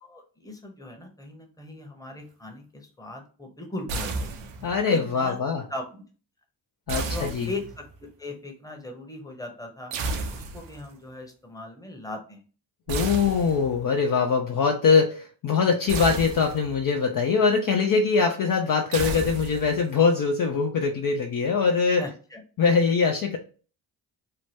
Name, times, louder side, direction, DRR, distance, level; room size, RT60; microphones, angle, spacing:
voice 1, 0.0-4.5 4.8-5.4 5.7-6.0 6.9-9.9 10.3-12.4 13.4-13.5 22.0-22.4, left 2 dB, 5° left, 3 dB, 0.9 m, -39 dB
sound 1, 3.9-4.8 6.9-8.0 9.9-10.9 12.9-13.9 15.9-16.9 18.9-19.9, right 3 dB, 75° right, 0.6 m, -32 dB
voice 2, 4.6-5.6 6.9-7.5 12.9-22.0 22.6-23.4, left 5 dB, 45° left, 3 dB, 0.5 m, -22 dB
2.8 x 2.1 x 3.3 m, 0.38 s
hypercardioid pair, 45°, 48 cm